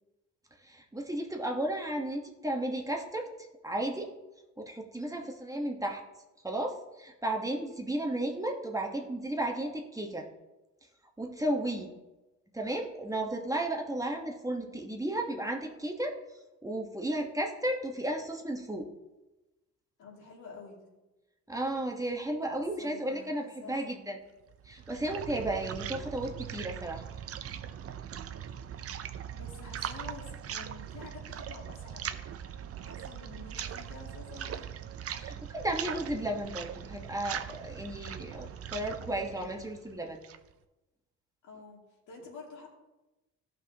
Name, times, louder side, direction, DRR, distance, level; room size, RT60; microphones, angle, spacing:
voice 1, 0.6-3.3 3.6-4.1 4.6-6.0 6.4-10.3 11.2-11.9 12.5-16.2 16.6-18.9 21.5-24.2 24.6-27.0 35.2-40.2, right 1 dB, 10° right, 1 dB, 1.1 m, -34 dB
voice 2, 20.0-20.9 22.5-24.1 29.3-32.1 32.8-34.7 41.4-41.8 42.1-42.7, left 3 dB, 75° left, -1 dB, 2.3 m, -49 dB
sound 1, 24.5-40.5, right 9 dB, 50° right, 0.6 m, -40 dB
14.5 x 5.8 x 2.8 m, 1.0 s
cardioid pair, 90°, 30 cm